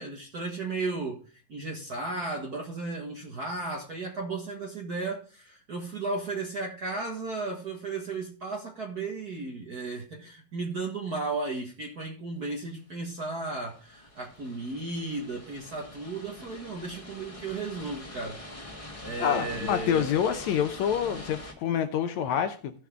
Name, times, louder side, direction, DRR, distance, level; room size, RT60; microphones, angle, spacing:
voice 1, 0.0-18.4 19.0-20.1, right 3 dB, 65° right, 0.9 m, -34 dB
sound 1, 13.2-21.5, left 1 dB, 15° left, 1.4 m, -44 dB
voice 2, 19.2-22.7, left 9 dB, 80° left, 1.6 m, -27 dB
16.0 x 5.8 x 3.6 m
omnidirectional pair, 4.2 m